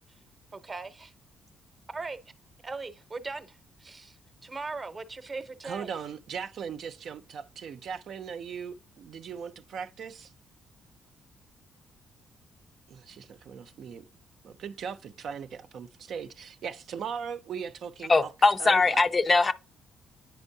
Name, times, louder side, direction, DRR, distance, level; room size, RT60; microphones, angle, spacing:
voice 1, 0.5-1.1 1.9-2.2 2.6-5.9, right 3 dB, 30° right, 0.8 m, -39 dB
voice 2, 5.6-10.3 12.9-14.0 14.4-18.1 18.6-19.0, right 7 dB, 65° right, 0.4 m, -39 dB
voice 3, 18.1-19.5, left 3 dB, 30° left, 0.4 m, -21 dB
9.0 x 4.4 x 2.6 m
cardioid pair, 90°, 0 cm